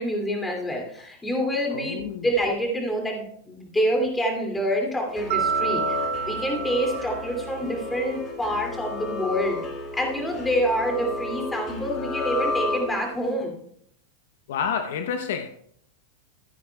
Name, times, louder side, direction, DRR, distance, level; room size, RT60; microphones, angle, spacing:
voice 1, 0.0-9.6 9.9-13.5, equal, 10° left, 2.5 m, -27 dB
voice 2, 1.7-2.3 14.5-15.5, left 7 dB, 75° left, 0.7 m, -29 dB
sound 1, 5.1-13.3, left 3 dB, 30° left, 2.2 m, -32 dB
Mallet percussion, 5.3-7.7, right 7 dB, 55° right, 0.8 m, -28 dB
15.0 x 9.6 x 2.3 m
supercardioid pair, 145°, 0 cm